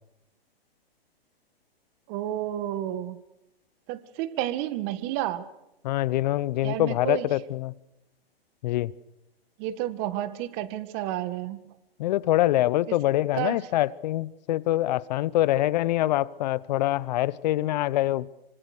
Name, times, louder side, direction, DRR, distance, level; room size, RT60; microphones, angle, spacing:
voice 1, 2.1-3.2 3.9-5.5 6.6-7.3 9.6-11.6 12.9-13.0 13.3-13.7, right 12 dB, 35° right, 1.8 m, -31 dB
voice 2, 5.8-7.7 8.6-8.9 12.0-18.3, left 15 dB, 45° left, 0.8 m, -25 dB
26.0 x 25.0 x 6.7 m
hypercardioid pair, 135°, 31 cm